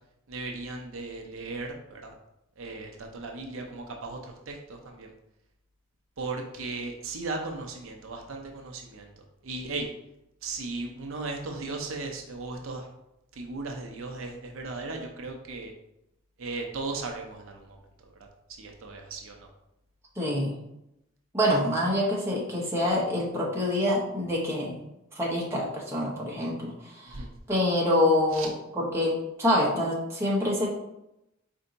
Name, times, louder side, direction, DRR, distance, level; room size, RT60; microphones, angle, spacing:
voice 1, 0.3-2.1 2.6-4.2 4.5-5.1 6.2-9.1 9.4-9.9 10.4-12.9 13.4-15.7 16.4-17.8 18.6-19.4 27.1-27.3 28.3-28.5, right 3 dB, 65° right, 2 dB, 0.6 m, -36 dB
voice 2, 20.2-20.5 21.3-24.7 25.2-27.2 27.5-30.7, left 1 dB, 10° right, -5 dB, 0.9 m, -26 dB
4.4 x 2.7 x 3.9 m, 0.85 s
head